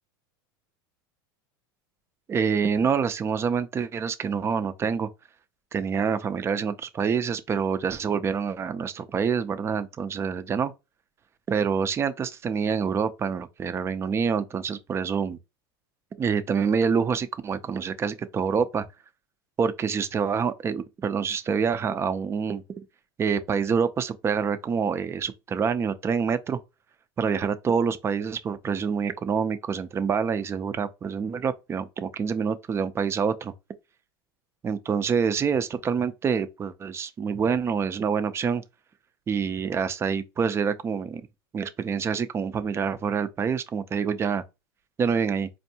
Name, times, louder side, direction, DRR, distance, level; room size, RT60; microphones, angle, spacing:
voice 1, 2.3-5.1 5.7-10.7 11.5-15.4 16.2-18.8 19.6-22.6 23.2-26.6 27.2-33.5 34.6-38.6 39.3-41.2 41.5-44.4 45.0-45.5, right 6 dB, 20° right, 0.4 m, -26 dB
4.3 x 2.5 x 2.8 m
supercardioid pair, 115°, 12 cm